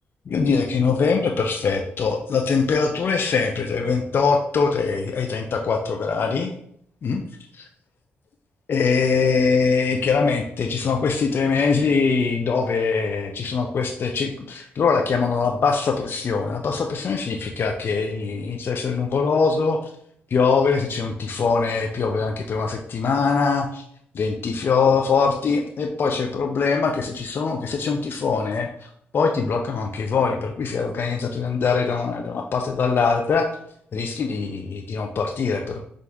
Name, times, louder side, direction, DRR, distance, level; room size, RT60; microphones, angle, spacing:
voice 1, 0.3-6.5 7.0-7.2 8.7-19.8 20.3-23.8 24.1-33.5 33.9-35.8, left 5 dB, 55° left, 2 dB, 0.5 m, -22 dB
4.4 x 2.6 x 3.5 m, 0.68 s
supercardioid pair, 60°, 5 cm